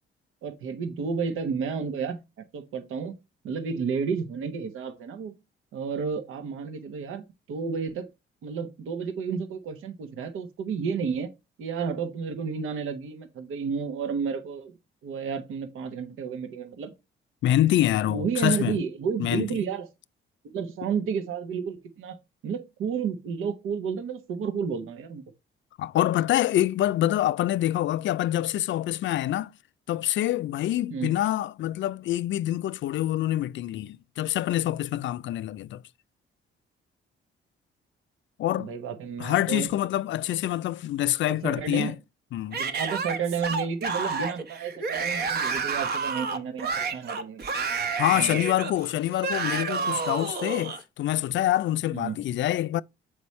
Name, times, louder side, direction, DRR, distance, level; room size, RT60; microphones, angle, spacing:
voice 1, 0.4-3.1 3.4-5.4 5.7-8.1 8.4-11.3 11.6-14.7 15.0-16.9 18.1-19.9 20.5-22.2 22.4-25.2 30.9-31.1 38.6-39.7 41.3-42.0 42.6-47.4 48.1-48.4 51.9-52.2, right 6 dB, 85° right, 1.1 m, -31 dB
voice 2, 17.4-18.8 19.2-19.5 25.8-29.5 29.9-35.8 38.4-38.7 39.2-41.9 42.3-42.6 48.0-52.8, left 13 dB, 65° left, 0.4 m, -26 dB
Yell / Screaming, 42.5-50.8, right 4 dB, 50° right, 1.0 m, -30 dB
7.0 x 4.9 x 3.1 m
cardioid pair, 125°, 21 cm